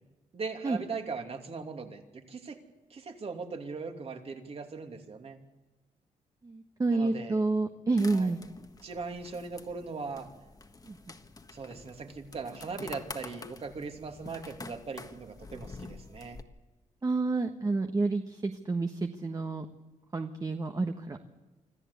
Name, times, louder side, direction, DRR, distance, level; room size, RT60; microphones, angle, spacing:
voice 1, 0.3-2.6 2.9-5.4 6.9-7.4 8.1-8.3 8.8-10.3 11.5-16.4, right 4 dB, 50° right, 5 dB, 2.9 m, -39 dB
voice 2, 6.4-8.4 10.8-11.0 17.0-19.6 20.1-21.2, right 3 dB, 30° right, 5 dB, 1.4 m, -29 dB
sound 1, 8.0-16.4, left 3 dB, 30° left, 1.5 m, -47 dB
25.5 x 14.5 x 8.3 m, 1.2 s
cardioid pair, 90°, 13 cm